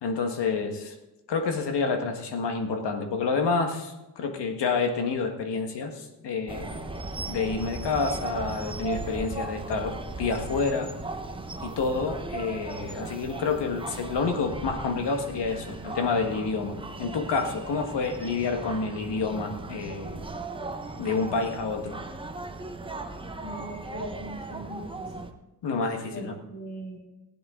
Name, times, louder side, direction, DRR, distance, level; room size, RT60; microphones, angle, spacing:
voice 1, 0.0-0.9 1.3-6.9 7.3-10.9 11.6-20.2 21.0-21.9 25.6-26.3, left 4 dB, 85° left, 4 dB, 1.6 m, -28 dB
sound 1, 6.5-25.3, right 3 dB, 15° right, 0.8 m, -37 dB
voice 2, 23.4-25.3 26.1-27.0, right 1 dB, 45° left, -4 dB, 2.2 m, -40 dB
15.5 x 10.5 x 3.8 m, 1.0 s
wide cardioid pair, 125°, 40 cm